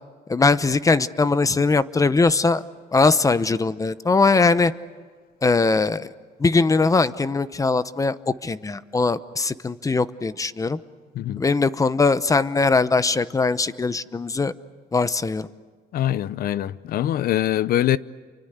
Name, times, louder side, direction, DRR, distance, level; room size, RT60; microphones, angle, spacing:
voice 1, 0.3-2.6 2.9-4.7 5.4-6.1 6.4-8.2 8.4-10.8 11.4-14.5 14.9-15.5, left 3 dB, 20° left, 0.9 m, -20 dB
voice 2, 15.9-18.0, left 12 dB, 60° left, 0.7 m, -23 dB
29.5 x 24.5 x 8.1 m
cardioid pair, 110°, 17 cm